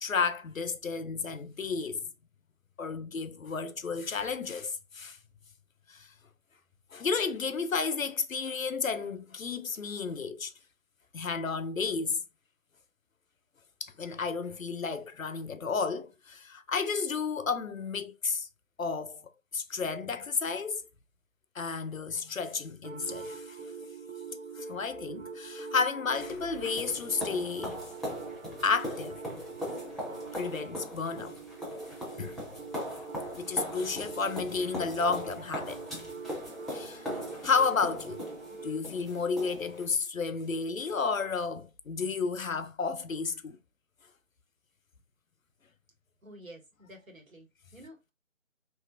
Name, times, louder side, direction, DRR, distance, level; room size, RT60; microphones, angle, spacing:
voice 1, 0.0-2.1 2.8-5.2 5.9-6.1 6.9-10.5 11.1-12.2 13.8-18.5 18.8-20.8 21.5-23.6 24.6-27.8 28.6-29.2 30.3-31.4 32.2-32.4 32.9-33.0 33.3-35.9 36.7-38.2 38.5-43.6, left 5 dB, 85° left, 0.6 m, -32 dB
sound 1, 22.8-38.8, right 4 dB, 65° right, 0.9 m, -44 dB
sound 2, 26.2-39.9, equal, ahead, 0.4 m, -40 dB
voice 2, 46.2-48.1, equal, 85° right, 1.7 m, -50 dB
3.1 x 2.9 x 2.3 m
figure-of-eight pair, 150°, 39 cm